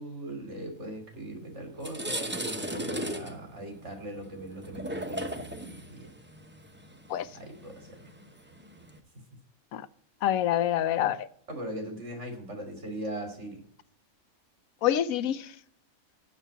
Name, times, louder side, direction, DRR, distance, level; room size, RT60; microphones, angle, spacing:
voice 1, 0.0-5.4 5.9-6.0 7.4-7.7 11.5-13.6, right 1 dB, 55° right, 3.2 m, -39 dB
sound 1, 1.2-1.3 1.7-9.0, right 1 dB, 10° right, 0.7 m, -37 dB
voice 2, 10.2-11.3 14.8-15.5, left 11 dB, 85° left, 1.1 m, -26 dB
7.3 x 7.0 x 8.1 m
omnidirectional pair, 1.4 m